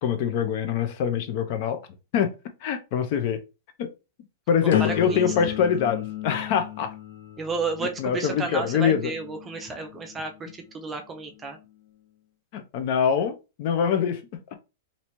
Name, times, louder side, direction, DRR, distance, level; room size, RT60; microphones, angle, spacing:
voice 1, 0.0-1.8 2.1-2.3 2.6-3.4 3.8-3.9 4.5-6.9 8.0-9.1 12.5-14.2, left 7 dB, 40° left, 0.6 m, -24 dB
voice 2, 4.6-5.4 7.4-11.6, right 4 dB, 15° right, 0.4 m, -32 dB
sound 1, 4.7-10.6 11.1-11.5, left 11 dB, 75° left, 0.8 m, -33 dB
3.2 x 2.7 x 2.9 m
supercardioid pair, 165°, 0 cm